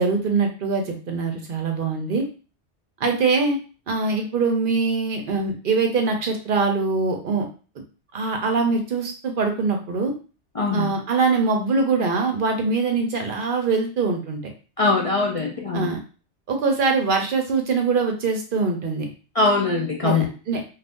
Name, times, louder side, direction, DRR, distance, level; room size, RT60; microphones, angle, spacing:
voice 1, 0.0-2.2 3.0-3.6 3.9-7.5 8.1-10.1 10.7-14.5 15.7-16.0 16.5-19.1 20.0-20.6, right 4 dB, 55° right, 3 dB, 0.7 m, -23 dB
voice 2, 10.6-10.9 14.8-15.9 19.4-20.3, left 3 dB, 50° left, -2 dB, 0.4 m, -22 dB
2.5 x 2.4 x 3.5 m, 0.36 s
omnidirectional pair, 1.2 m